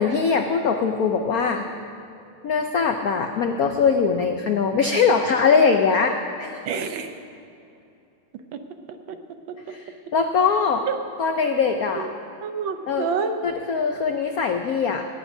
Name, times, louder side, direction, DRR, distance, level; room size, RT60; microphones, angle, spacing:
voice 1, 0.0-1.6 2.4-6.6 9.7-9.8 10.1-10.9 11.2-12.1 12.9-13.1 13.4-15.0, left 5 dB, 80° left, 5 dB, 0.8 m, -21 dB
voice 2, 6.6-7.2 8.5-8.6 9.1-9.2 9.5-9.6 10.9-11.0 11.9-12.1 12.4-13.4, right 6 dB, 70° right, 7 dB, 1.4 m, -28 dB
18.0 x 17.0 x 2.7 m, 2.7 s
omnidirectional pair, 2.4 m